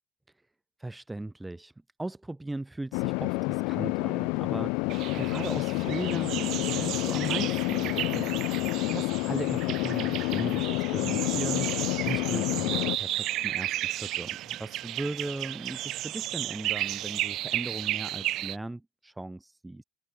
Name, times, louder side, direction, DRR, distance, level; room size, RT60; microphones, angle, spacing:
voice 1, 0.8-1.7 2.0-8.5 8.8-19.8, right 2 dB, 10° right, 2.1 m, -38 dB
sound 1, 2.9-13.0, left 30 dB, 80° left, 1.0 m, -29 dB
sound 2, 4.9-18.6, right 15 dB, 60° right, 2.0 m, -34 dB
cardioid pair, 125°, 0 cm